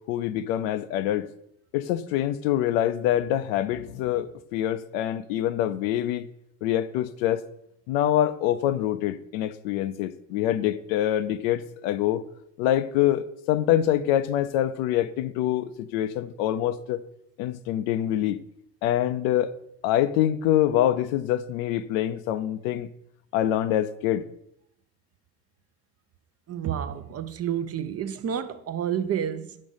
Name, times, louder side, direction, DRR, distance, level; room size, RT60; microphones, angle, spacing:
voice 1, 0.1-1.3 1.7-6.3 6.6-7.4 7.9-12.2 12.6-17.0 17.4-18.4 18.8-19.5 19.8-22.9 23.3-24.2, left 12 dB, 75° left, 0.6 m, -25 dB
voice 2, 26.5-29.6, right 9 dB, 35° right, 0.6 m, -30 dB
5.3 x 5.1 x 5.5 m
hypercardioid pair, 75°, 42 cm